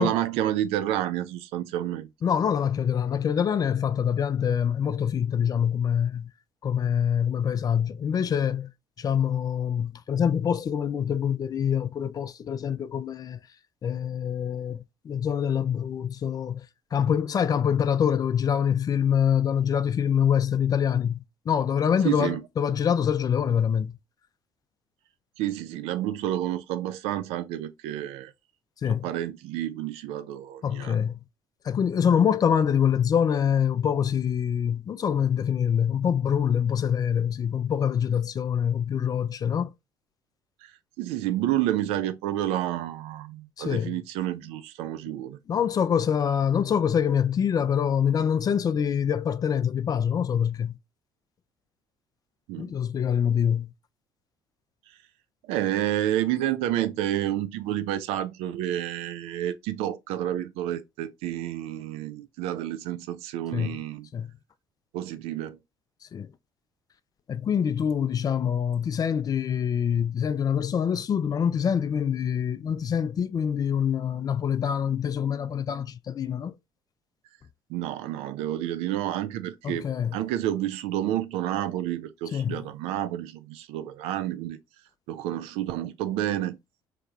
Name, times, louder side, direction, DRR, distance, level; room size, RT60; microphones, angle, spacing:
voice 1, 0.0-2.1 22.0-22.4 25.4-28.3 29.0-31.0 40.6-45.4 52.5-52.7 55.5-64.1 64.9-65.6 77.7-84.6 85.1-86.6, right 12 dB, 65° right, 0.4 m, -29 dB
voice 2, 2.2-6.3 6.6-8.7 9.0-13.4 13.8-16.7 16.9-21.2 21.5-24.0 28.8-29.1 30.6-31.2 31.6-39.7 43.6-43.9 45.5-50.8 52.6-53.7 63.5-63.8 64.1-64.3 66.1-66.3 67.3-76.5 79.6-80.2 82.3-82.6, left 8 dB, 35° left, 0.3 m, -25 dB
3.2 x 2.9 x 2.4 m
figure-of-eight pair, 50°, 11 cm